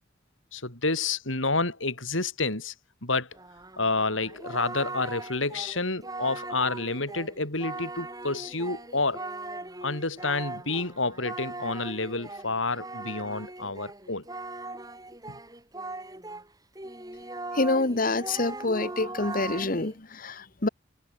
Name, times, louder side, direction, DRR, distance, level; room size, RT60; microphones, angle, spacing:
voice 1, 0.5-2.7 3.0-3.3 3.8-9.2 9.8-14.2 15.3-15.4, left 3 dB, 85° left, 7.2 m, -29 dB
Singing, 3.3-16.5 16.7-20.0, right 2 dB, 20° right, 7.9 m, -39 dB
voice 2, 17.5-20.7, left 2 dB, 45° left, 1.3 m, -27 dB
head